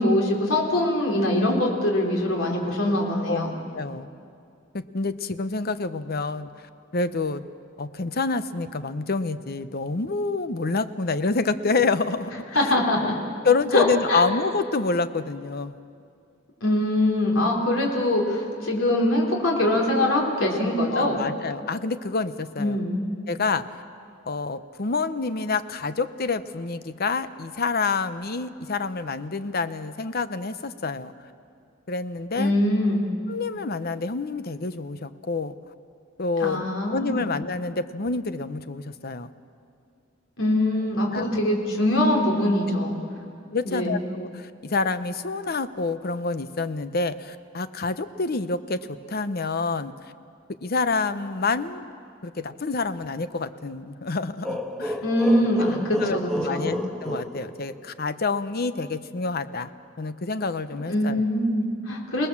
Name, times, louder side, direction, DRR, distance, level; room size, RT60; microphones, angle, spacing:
voice 1, 0.0-3.5 12.5-13.2 13.7-14.3 16.6-21.2 22.6-23.0 32.4-33.0 36.4-37.3 40.4-43.0 43.6-44.0 55.0-56.7 60.9-62.3, left 1 dB, 80° left, -1 dB, 3.6 m, -23 dB
voice 2, 3.7-4.1 4.7-6.5 6.9-7.4 7.8-12.7 13.4-15.7 20.9-22.8 23.3-23.8 24.3-31.1 31.9-32.5 33.3-35.5 36.2-36.7 36.9-39.3 41.1-41.4 43.5-49.9 50.6-51.9 52.2-55.0 56.0-59.7 60.0-61.2, left 4 dB, 50° left, 12 dB, 0.8 m, -27 dB
sound 1, 54.4-58.1, equal, 5° left, 1.4 m, -31 dB
28.5 x 19.0 x 7.4 m, 2.4 s
head